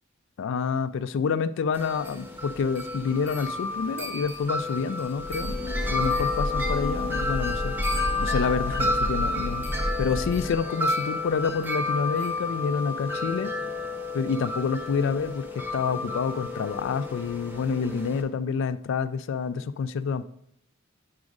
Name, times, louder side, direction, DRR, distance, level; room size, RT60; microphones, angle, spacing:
voice 1, 0.4-5.6 5.9-7.7 8.2-9.7 10.0-13.5 14.1-15.5 15.7-20.2, left 5 dB, 65° left, 15 dB, 0.3 m, -28 dB
Wind chime, 1.7-18.2, left 2 dB, 10° right, 0.7 m, -31 dB
Breathing / Train, 5.2-10.7, left 1 dB, 30° left, 0.6 m, -31 dB
5.2 x 4.8 x 4.8 m, 0.72 s
head